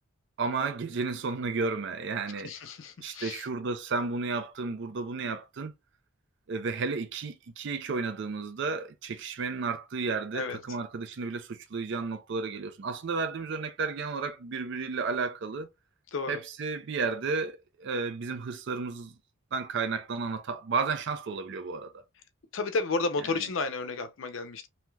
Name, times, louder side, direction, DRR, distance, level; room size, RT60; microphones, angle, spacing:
voice 1, 0.4-2.5 3.0-5.7 6.5-15.7 16.3-19.1 19.5-22.0, right 4 dB, 55° right, 0.4 m, -32 dB
voice 2, 2.4-3.5 10.3-10.6 16.1-16.4 22.5-24.7, left 3 dB, 65° left, 0.5 m, -32 dB
3.1 x 2.8 x 2.2 m
head